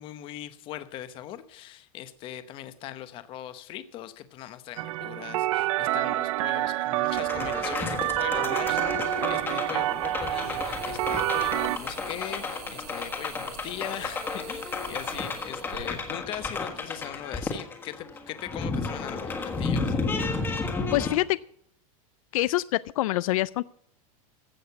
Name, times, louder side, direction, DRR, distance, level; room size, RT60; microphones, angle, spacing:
voice 1, 0.0-20.0, left 12 dB, 30° left, 12 dB, 0.8 m, -40 dB
sound 1, 4.8-11.8, right 17 dB, 60° right, 0.6 m, -28 dB
sound 2, 7.1-21.1, left 4 dB, 10° left, 1.5 m, -32 dB
sound 3, 7.5-7.6 9.0-16.9, right 10 dB, 90° right, 1.9 m, -47 dB
voice 2, 20.9-21.4 22.3-23.6, left 17 dB, 70° left, 18 dB, 0.4 m, -25 dB
15.5 x 6.4 x 7.0 m, 0.67 s
supercardioid pair, 170°, 19 cm